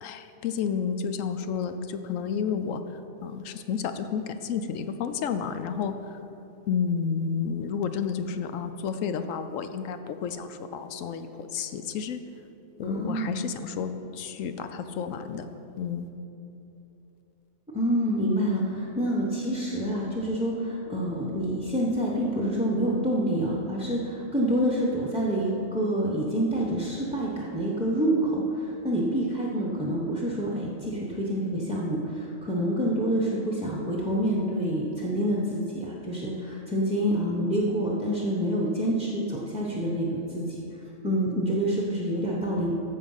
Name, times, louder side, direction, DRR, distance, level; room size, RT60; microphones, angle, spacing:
voice 1, 0.0-2.8 3.2-5.9 6.7-11.3 11.5-12.2 12.8-13.9 14.2-15.5 15.8-16.1, left 6 dB, 75° left, 9 dB, 1.0 m, -31 dB
voice 2, 12.8-13.4 17.7-40.6 41.0-42.7, equal, 5° right, -4 dB, 0.7 m, -27 dB
14.0 x 4.7 x 5.5 m, 2.9 s
omnidirectional pair, 1.4 m